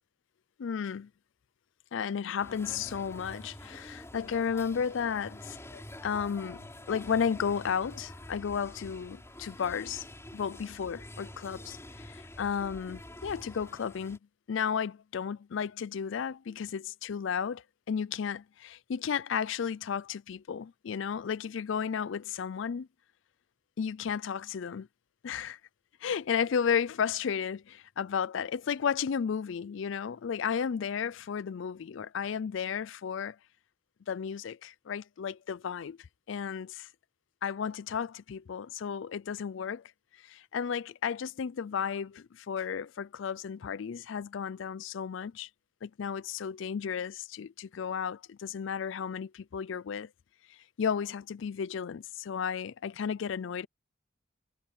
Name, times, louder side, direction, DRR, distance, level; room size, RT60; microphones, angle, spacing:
voice 1, 0.6-1.1 1.9-10.1 10.3-14.2 14.5-22.9 23.8-24.9 25.2-25.6 26.0-33.4 34.1-36.0 36.3-36.9 37.4-39.8 40.2-45.5 45.8-50.1 50.5-53.7, left 7 dB, 60° left, 0.4 m, -33 dB
sound 1, 2.4-14.2, left 1 dB, 15° left, 5.0 m, -47 dB
head